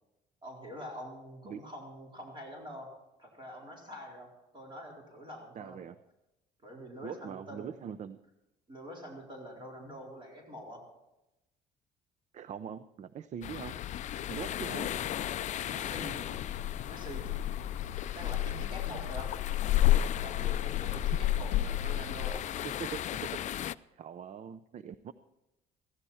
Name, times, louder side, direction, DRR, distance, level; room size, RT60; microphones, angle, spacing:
voice 1, 0.4-2.9 3.2-4.3 4.5-5.8 6.6-7.8 8.7-10.8 14.6-15.0 15.7-16.6 16.9-17.6 18.1-19.3 20.2-22.4, equal, 30° right, -1 dB, 4.2 m, -45 dB
voice 2, 5.6-5.9 7.0-8.2 12.3-13.8 14.3-14.9 22.6-23.3 23.9-25.1, right 8 dB, 45° right, 14 dB, 0.6 m, -42 dB
sound 1, 13.4-23.7, left 11 dB, 45° left, 0.4 m, -38 dB
sound 2, 13.6-22.4, left 13 dB, 85° left, 0.6 m, -32 dB
15.0 x 15.0 x 4.3 m, 0.94 s
cardioid pair, 110°, 17 cm